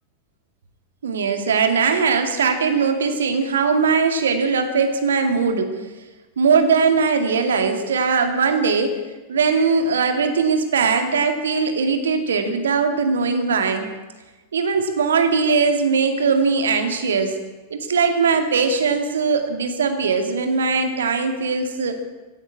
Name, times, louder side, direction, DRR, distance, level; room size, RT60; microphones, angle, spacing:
voice 1, 1.0-5.8 6.4-9.0 9.3-13.9 14.5-17.4 17.7-22.0, right 5 dB, 65° right, 6 dB, 2.1 m, -20 dB
16.0 x 9.6 x 8.7 m, 1.2 s
figure-of-eight pair, 90°, 0 cm